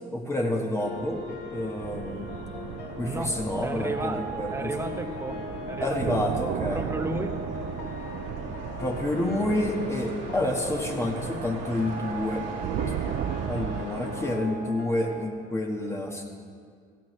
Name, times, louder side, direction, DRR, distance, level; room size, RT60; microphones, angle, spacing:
voice 1, 0.1-1.2 1.5-2.3 3.0-4.7 5.8-6.8 8.8-12.4 13.5-16.3, left 1 dB, 15° left, 1 dB, 1.5 m, -29 dB
sound 1, 0.8-15.3, left 2 dB, 75° left, 1.2 m, -39 dB
sound 2, 0.8-14.3, right 3 dB, 90° right, 2.3 m, -42 dB
sound 3, 1.8-13.8, right 11 dB, 60° right, 0.4 m, -36 dB
voice 2, 3.0-3.3 3.6-6.5 6.7-7.3, right 2 dB, 15° right, 6 dB, 0.9 m, -34 dB
17.0 x 14.5 x 3.3 m, 2.1 s
cardioid pair, 110°, 17 cm